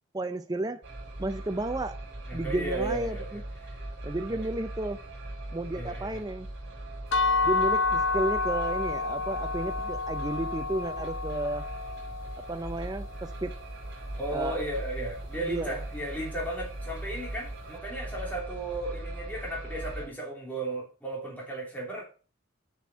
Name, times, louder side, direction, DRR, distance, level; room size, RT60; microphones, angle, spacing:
voice 1, 0.1-0.8 1.2-2.0 2.3-3.4 4.0-5.0 5.5-6.5 7.4-11.7 12.4-13.6 14.3-14.6 15.4-15.8, right 1 dB, 20° right, 0.5 m, -32 dB
sound 1, 0.8-20.1, right 1 dB, 55° right, 3.2 m, -39 dB
voice 2, 2.3-3.3 3.6-3.8 4.3-4.4 5.7-6.2 14.2-22.0, right 1 dB, 10° left, 3.0 m, -35 dB
sound 2, 7.1-12.9, left 4 dB, 65° left, 0.6 m, -29 dB
6.9 x 6.0 x 6.2 m
head